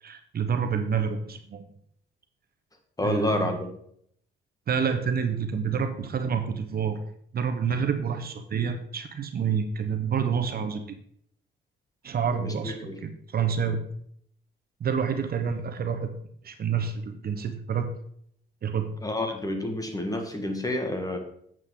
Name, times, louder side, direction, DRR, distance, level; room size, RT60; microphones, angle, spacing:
voice 1, 0.0-1.7 3.0-3.5 4.7-7.0 7.3-11.0 12.0-13.8 14.8-16.2 16.4-17.9 18.6-18.9, right 6 dB, 50° right, 7 dB, 1.0 m, -28 dB
voice 2, 3.0-3.7 12.4-13.0 19.0-21.2, left 1 dB, 20° left, 5 dB, 1.5 m, -29 dB
7.9 x 7.7 x 3.8 m, 0.67 s
cardioid pair, 90°, 20 cm